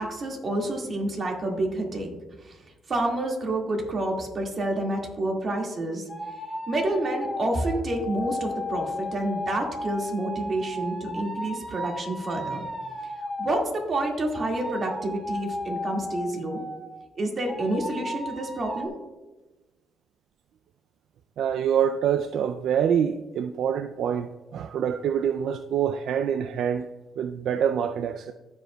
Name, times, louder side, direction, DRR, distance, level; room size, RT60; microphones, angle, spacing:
voice 1, 0.0-2.1 2.4-2.6 2.9-6.1 6.7-12.6 13.4-16.6 17.2-18.9, right 1 dB, 45° right, 1.9 m, -28 dB
sound 1, 6.1-13.7 14.3-17.0 17.5-18.9, left 1 dB, 15° left, 1.3 m, -35 dB
voice 2, 21.4-26.9 27.2-28.3, right 8 dB, 75° right, 0.3 m, -26 dB
15.5 x 5.1 x 2.2 m
cardioid pair, 90°, 0 cm